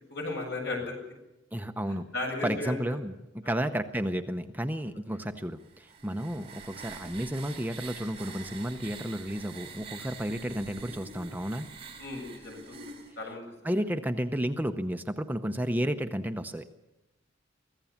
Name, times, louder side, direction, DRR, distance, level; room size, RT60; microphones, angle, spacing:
voice 1, 0.1-0.9 2.1-2.8 3.4-3.6 6.0-6.1 12.0-13.5, left 2 dB, 65° left, 0 dB, 7.6 m, -35 dB
voice 2, 1.5-2.1 2.4-11.7 13.6-16.7, equal, 10° right, 7 dB, 0.7 m, -32 dB
sound 1, 5.6-13.1, right 5 dB, 30° right, 4.3 m, -46 dB
24.0 x 16.0 x 7.2 m, 0.97 s
head